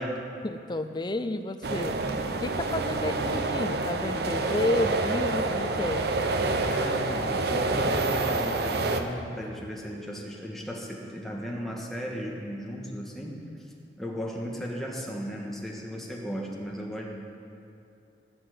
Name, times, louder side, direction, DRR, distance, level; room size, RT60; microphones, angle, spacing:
voice 1, 0.4-2.0 2.3-6.0, left 2 dB, 25° left, 9 dB, 0.6 m, -31 dB
sound 1, 1.6-9.0, right 3 dB, 65° right, 0.9 m, -27 dB
voice 2, 6.7-13.4 14.0-17.1, equal, ahead, -2 dB, 1.7 m, -35 dB
16.5 x 5.9 x 8.6 m, 2.8 s
head